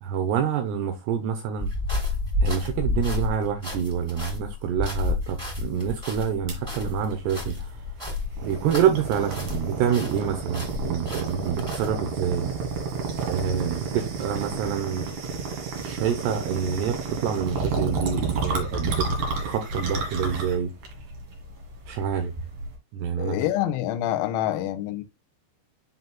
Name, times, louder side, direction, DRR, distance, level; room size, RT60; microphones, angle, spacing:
voice 1, 0.0-1.7 2.4-7.8 8.4-12.5 13.2-15.1 15.8-19.1 19.4-20.7 21.9-22.3 22.9-23.4, right 8 dB, 80° right, 2.5 m, -27 dB
sound 1, 1.6-9.7 9.9-11.9, left 2 dB, 10° right, 1.9 m, -30 dB
sound 2, 6.5-22.8, right 4 dB, 55° right, 2.5 m, -31 dB
voice 2, 23.2-25.0, left 13 dB, 80° left, 3.0 m, -26 dB
10.5 x 4.0 x 2.2 m
omnidirectional pair, 5.5 m